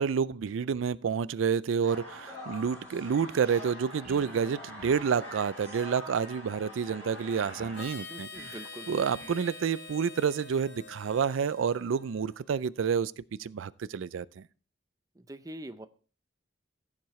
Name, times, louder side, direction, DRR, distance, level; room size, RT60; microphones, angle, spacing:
voice 1, 0.0-8.3 8.9-14.4, right 6 dB, 85° right, 0.4 m, -29 dB
sound 1, 1.8-7.8, left 1 dB, 10° left, 6.7 m, -44 dB
sound 2, 4.0-4.4 4.8-5.1 7.6-7.8 8.3-8.7 9.2-9.5, right 3 dB, 40° right, 0.9 m, -51 dB
Harmonica, 7.7-12.5, left 3 dB, 65° left, 2.4 m, -46 dB
voice 2, 8.1-9.0 15.2-15.9, right 1 dB, 20° right, 0.5 m, -44 dB
15.0 x 7.4 x 3.1 m
head